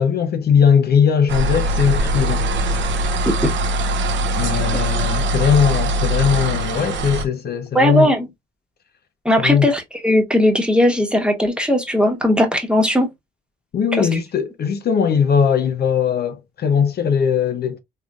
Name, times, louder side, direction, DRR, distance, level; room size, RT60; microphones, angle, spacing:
voice 1, 0.0-2.9 4.4-8.1 9.4-9.7 13.7-17.8, left 7 dB, 55° left, 0.7 m, -19 dB
sound 1, 1.3-7.2, right 1 dB, 70° right, 0.8 m, -21 dB
voice 2, 7.7-8.3 9.2-13.1 14.0-14.1, left 1 dB, 5° right, 1.2 m, -17 dB
3.5 x 3.3 x 2.4 m
cardioid pair, 90°, 20 cm